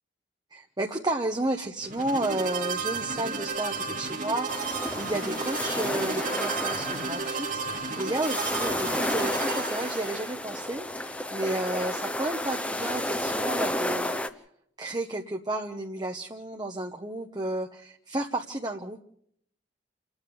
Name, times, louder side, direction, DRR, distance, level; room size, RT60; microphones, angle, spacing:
voice 1, 0.5-14.1 14.8-19.0, right 2 dB, 25° right, 3 dB, 1.1 m, -32 dB
sound 1, 1.8-10.3, right 4 dB, 45° right, 2.2 m, -33 dB
sound 2, 4.5-14.3, left 1 dB, 5° left, 1.0 m, -31 dB
29.0 x 9.8 x 9.5 m, 0.69 s
head